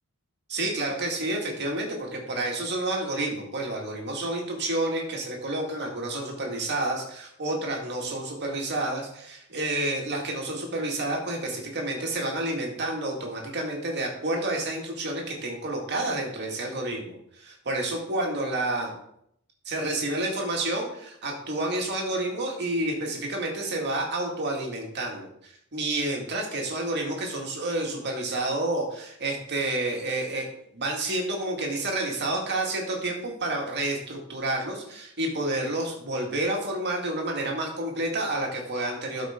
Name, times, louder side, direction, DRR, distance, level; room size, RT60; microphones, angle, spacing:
voice 1, 0.5-18.9 19.6-39.3, right 2 dB, 50° right, 0 dB, 2.1 m, -29 dB
12.5 x 5.2 x 3.7 m, 0.73 s
head